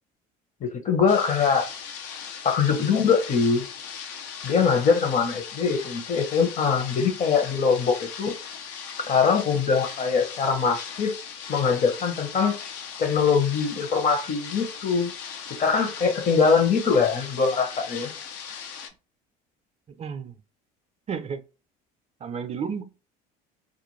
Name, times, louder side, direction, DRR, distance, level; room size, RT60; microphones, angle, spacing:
voice 1, 0.6-1.7 2.4-3.7 4.4-8.3 9.1-11.1 11.5-12.5 13.0-15.1 15.5-18.1, left 5 dB, 40° left, 0.9 m, -22 dB
sound 1, 1.1-18.9, left 7 dB, 75° left, 0.6 m, -38 dB
voice 2, 19.9-20.3 21.1-21.4 22.2-23.0, right 6 dB, 35° right, 0.5 m, -32 dB
2.5 x 2.2 x 3.1 m
supercardioid pair, 85°, 20 cm